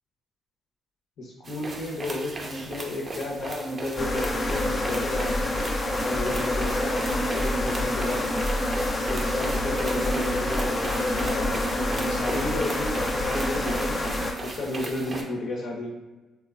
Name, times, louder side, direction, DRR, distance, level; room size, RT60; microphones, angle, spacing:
voice 1, 1.2-5.6 6.0-8.5 9.1-15.9, left 1 dB, 65° left, -2 dB, 0.7 m, -32 dB
sound 1, 1.5-15.2, right 2 dB, 35° right, 0.4 m, -37 dB
sound 2, 4.0-14.3, left 1 dB, 30° left, 0.4 m, -27 dB
3.0 x 2.1 x 2.4 m, 1.2 s
cardioid pair, 90°, 0 cm